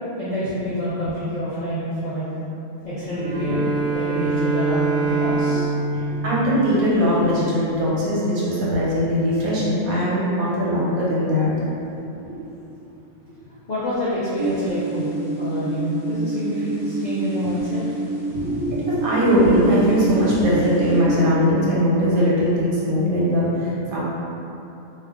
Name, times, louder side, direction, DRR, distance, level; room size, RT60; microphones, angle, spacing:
voice 1, 0.2-2.3 2.8-3.6 3.9-5.7 13.7-17.8, equal, 70° left, -10 dB, 0.4 m, -27 dB
Bowed string instrument, 3.1-7.2, right 3 dB, 65° right, 0.5 m, -24 dB
voice 2, 5.9-11.7 12.2-12.3 13.3-13.4 18.3-24.0, equal, 80° right, -7 dB, 1.2 m, -20 dB
sound 1, 14.3-21.0, right 2 dB, 30° right, 0.9 m, -28 dB
2.4 x 2.4 x 3.4 m, 2.9 s
omnidirectional pair, 1.5 m